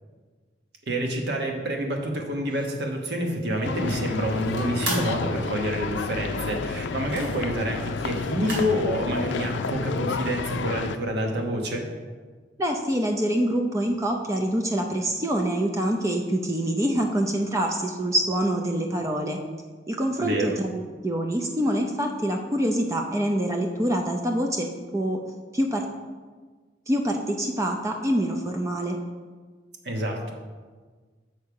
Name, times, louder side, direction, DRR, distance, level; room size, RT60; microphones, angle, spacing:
voice 1, 0.9-11.9 20.2-20.5 29.8-30.3, equal, 65° right, 1 dB, 1.3 m, -28 dB
sound 1, 2.5-8.8, right 2 dB, 80° right, 2.7 m, -38 dB
sound 2, 3.6-11.0, left 4 dB, 75° left, 0.4 m, -31 dB
voice 2, 12.6-19.4 19.9-24.7 24.9-25.2 25.5-25.8 26.9-29.0, right 1 dB, 15° right, 2 dB, 0.5 m, -25 dB
6.9 x 6.5 x 4.7 m, 1.4 s
head